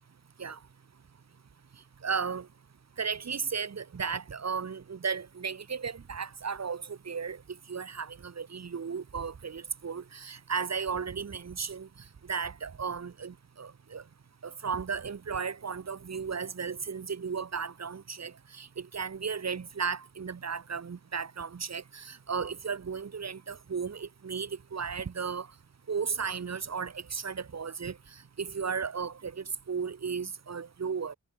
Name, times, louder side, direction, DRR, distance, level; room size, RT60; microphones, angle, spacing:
voice 1, 2.0-2.5 3.0-7.4 7.7-11.9 12.3-14.0 14.4-25.5 25.9-28.0 28.4-31.1, right 6 dB, 55° right, 1.5 m, -35 dB
wide cardioid pair, 100°, 32 cm